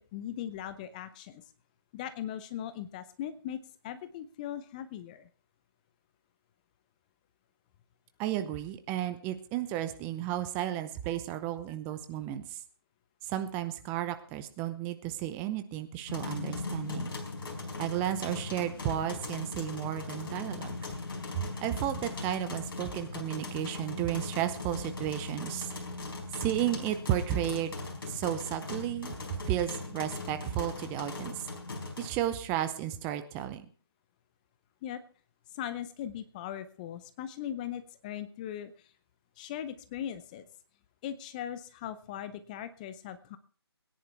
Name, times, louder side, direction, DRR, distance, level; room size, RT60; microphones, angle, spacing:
voice 1, 0.1-1.4 1.9-3.6 3.8-5.3 34.8-35.0 35.5-38.9 39.4-40.4 41.0-43.4, left 10 dB, 20° left, 13 dB, 0.6 m, -39 dB
voice 2, 8.2-12.6 13.2-17.1 17.8-20.8 21.3-25.7 26.4-27.7 28.1-29.2 29.5-31.5 32.0-33.7, right 12 dB, 15° right, 10 dB, 0.7 m, -33 dB
sound 1, 16.1-32.1, left 3 dB, 55° left, 4.5 m, -39 dB
21.5 x 10.5 x 3.4 m, 0.41 s
figure-of-eight pair, 150°, 14 cm